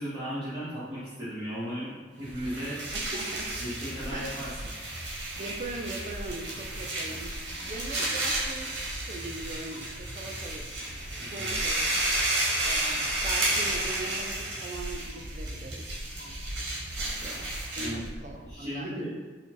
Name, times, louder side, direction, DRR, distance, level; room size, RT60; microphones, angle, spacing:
voice 1, 0.0-2.8 3.6-4.5 11.2-11.6 17.8-18.0 18.4-19.1, equal, 20° right, -13 dB, 1.4 m, -36 dB
sound 1, 2.1-18.5, equal, 45° left, 0.9 m, -42 dB
sound 2, 2.3-18.1, right 2 dB, 80° right, 1.3 m, -32 dB
voice 2, 2.9-3.6 4.1-4.3 5.4-7.4 7.7-10.8 11.3-11.8 12.6-15.9 17.0-19.1, right 2 dB, 40° right, 3 dB, 0.4 m, -40 dB
4.1 x 2.6 x 4.5 m, 1.4 s
head